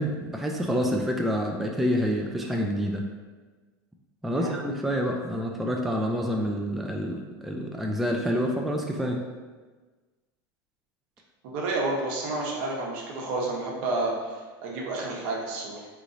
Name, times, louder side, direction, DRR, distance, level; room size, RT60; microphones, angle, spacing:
voice 1, 0.0-3.0 4.2-9.2, equal, ahead, 1 dB, 0.3 m, -27 dB
voice 2, 11.4-15.9, right 2 dB, 70° right, -2 dB, 0.9 m, -30 dB
3.7 x 3.1 x 2.5 m, 1.3 s
supercardioid pair, 100°, 12 cm